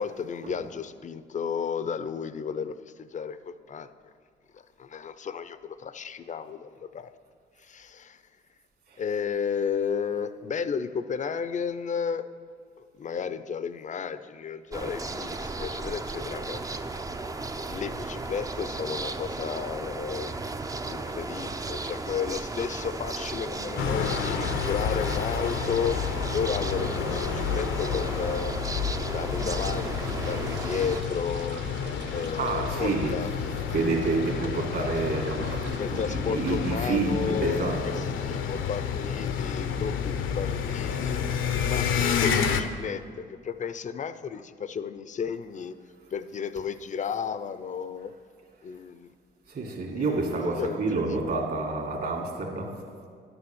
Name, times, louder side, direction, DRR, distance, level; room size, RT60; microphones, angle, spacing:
voice 1, 0.0-3.9 4.5-7.1 7.6-8.2 9.0-12.2 12.8-16.6 17.7-20.4 20.9-26.0 26.3-28.6 29.1-31.6 32.1-33.3 34.4-34.6 35.8-41.2 41.6-45.7 46.1-48.1 48.6-49.1 49.9-51.2, left 6 dB, 40° left, 12 dB, 0.6 m, -33 dB
sound 1, 14.7-31.0, right 3 dB, 15° right, 0.5 m, -35 dB
sound 2, 23.8-42.6, left 7 dB, 75° left, 0.8 m, -30 dB
sound 3, 29.4-37.9, right 5 dB, 70° right, 0.9 m, -44 dB
voice 2, 32.4-33.3 33.7-35.5 35.9-38.1 49.5-52.8, right 3 dB, 50° right, 1 dB, 2.1 m, -29 dB
11.0 x 6.9 x 7.2 m, 2.1 s
cardioid pair, 90°, 20 cm